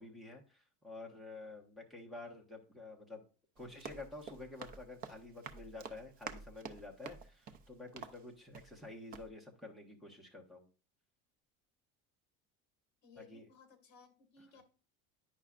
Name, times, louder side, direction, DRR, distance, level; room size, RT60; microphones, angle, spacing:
voice 1, 0.0-3.2 3.6-10.7 13.2-13.5, left 2 dB, ahead, 0 dB, 1.1 m, -50 dB
Run, 3.6-8.9 9.1-9.3, right 6 dB, 30° right, 0.5 m, -49 dB
voice 2, 13.0-14.6, left 5 dB, 35° left, 5 dB, 1.9 m, -60 dB
9.8 x 5.6 x 2.4 m, 0.37 s
cardioid pair, 175°, 29 cm